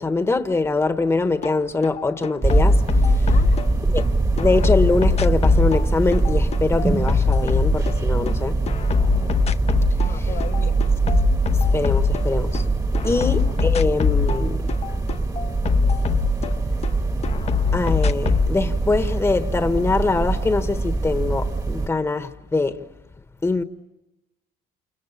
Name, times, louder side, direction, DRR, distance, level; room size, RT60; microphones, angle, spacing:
voice 1, 0.0-3.3 3.9-4.0 4.4-8.6 10.1-10.3 11.5-12.7 13.0-14.7 17.7-22.8 23.4-23.6, left 3 dB, 15° left, 1.2 m, -23 dB
sound 1, 1.4-1.6 1.8-4.0 4.4-8.4 8.7-10.1 10.4-12.6 12.9-16.9 17.2-18.5, left 6 dB, 40° left, 0.9 m, -22 dB
sound 2, 2.4-21.9, right 3 dB, 20° right, 1.5 m, -23 dB
voice 2, 3.3-3.6 8.1-8.7 9.1-9.5 10.0-10.8 13.0-13.3, left 9 dB, 60° left, 1.9 m, -38 dB
29.0 x 28.5 x 7.2 m
cardioid pair, 110°, 17 cm